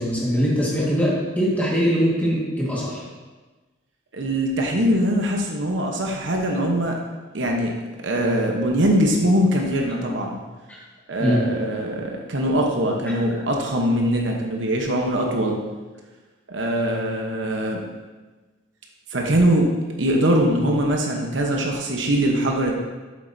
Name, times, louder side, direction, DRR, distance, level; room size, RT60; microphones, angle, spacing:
voice 1, 0.0-3.0 10.7-10.8 11.2-11.5, equal, 10° left, -6 dB, 1.7 m, -22 dB
voice 2, 4.1-7.0 7.3-7.7 8.0-10.4 11.1-15.6 16.5-17.8 19.1-19.7 20.0-22.7, equal, 70° right, 1 dB, 1.0 m, -22 dB
7.8 x 7.7 x 2.7 m, 1.2 s
head